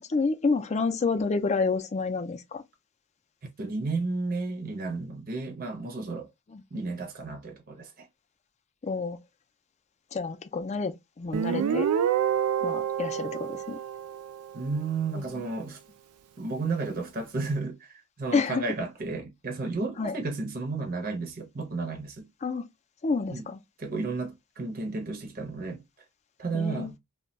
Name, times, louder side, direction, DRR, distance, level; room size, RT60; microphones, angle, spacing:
voice 1, 0.1-2.6 6.5-6.8 8.8-9.2 10.1-11.9 12.6-13.8 15.1-15.4 18.3-18.6 20.0-20.1 22.4-22.7 23.0-23.6 26.5-26.9, left 4 dB, 30° left, 0.4 m, -29 dB
voice 2, 3.6-6.3 6.7-8.1 14.5-15.8 16.4-22.3 23.3-23.5 23.8-25.8 26.4-26.9, right 3 dB, 40° right, 0.6 m, -32 dB
Guitar, 11.3-14.8, right 9 dB, 75° right, 0.3 m, -28 dB
2.2 x 2.2 x 3.8 m
head